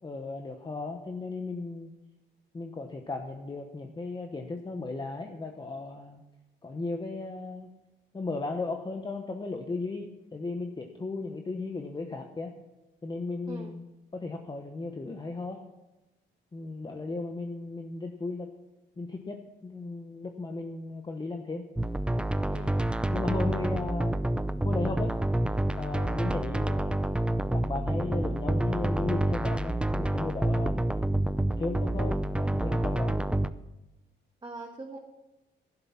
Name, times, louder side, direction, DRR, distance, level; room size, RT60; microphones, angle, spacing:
voice 1, 0.0-1.9 2.5-6.2 6.6-7.7 8.1-12.5 13.0-13.9 14.1-15.6 16.5-18.5 19.0-21.7 23.1-24.2 24.6-25.1 25.8-27.0 27.5-30.8 31.6-33.2, left 3 dB, 20° left, 4 dB, 1.1 m, -35 dB
sound 1, 21.8-33.5, right 1 dB, 5° right, 0.5 m, -28 dB
voice 2, 34.4-35.0, right 2 dB, 25° right, 1 dB, 1.6 m, -41 dB
12.0 x 11.0 x 5.8 m, 1.0 s
cardioid pair, 90°, 20 cm